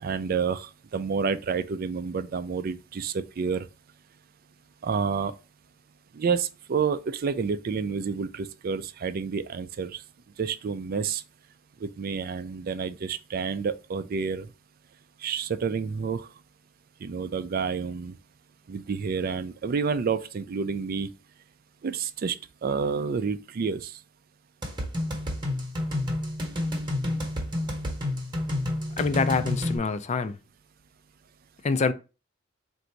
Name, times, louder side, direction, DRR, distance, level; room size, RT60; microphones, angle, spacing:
voice 1, 0.0-3.7 4.8-5.3 6.1-10.0 10.4-11.2 11.8-14.5 15.2-16.3 17.0-18.1 18.7-21.1 21.8-22.4 22.6-23.9, right 5 dB, 45° right, 0.4 m, -29 dB
sound 1, 24.6-29.8, left 1 dB, 20° right, 1.0 m, -29 dB
voice 2, 29.0-30.4 31.6-31.9, left 4 dB, 35° left, 0.4 m, -25 dB
3.9 x 2.6 x 4.5 m
head